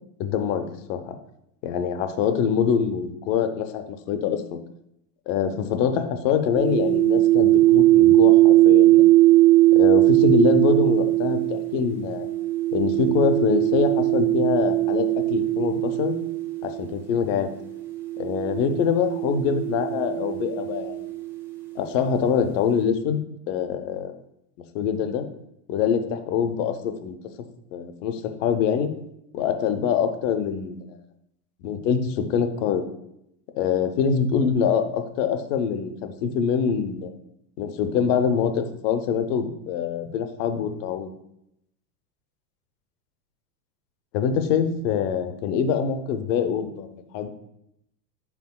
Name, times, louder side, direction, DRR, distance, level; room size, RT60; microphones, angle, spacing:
voice 1, 0.2-1.1 1.6-4.6 5.3-9.1 9.7-12.3 12.7-16.1 16.6-17.5 18.2-21.0 21.7-23.2 23.5-24.1 24.7-25.2 25.7-27.2 27.7-28.9 29.3-31.0 31.6-32.9 33.6-37.1 37.6-41.1 44.1-47.3, left 7 dB, 50° left, 8 dB, 0.6 m, -24 dB
sound 1, 6.5-16.9 17.8-21.6, right 17 dB, 5° right, 0.5 m, -20 dB
5.9 x 3.5 x 2.3 m, 0.80 s
supercardioid pair, 125°, 49 cm